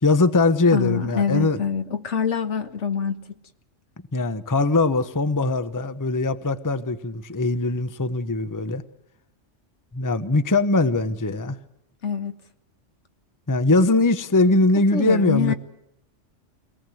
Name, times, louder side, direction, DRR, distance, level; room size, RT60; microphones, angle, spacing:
voice 1, 0.0-1.6 4.1-8.8 9.9-11.6 13.5-15.5, left 2 dB, 20° left, 0.8 m, -21 dB
voice 2, 0.7-3.2 12.0-12.3 14.7-15.5, left 6 dB, 70° left, 1.6 m, -25 dB
23.5 x 19.0 x 7.8 m
omnidirectional pair, 1.3 m